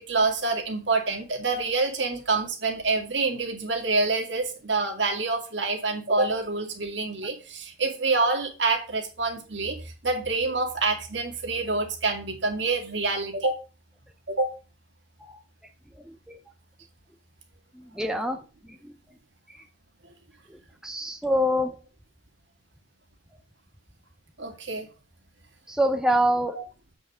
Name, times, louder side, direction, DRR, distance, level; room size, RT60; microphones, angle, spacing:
voice 1, 0.0-13.5 14.3-14.5 24.4-24.9 26.5-26.6, right 3 dB, 70° right, 3 dB, 2.1 m, -27 dB
voice 2, 18.0-18.4 20.8-21.7 25.7-26.5, equal, 5° right, 5 dB, 0.6 m, -24 dB
8.3 x 4.5 x 4.9 m, 0.33 s
head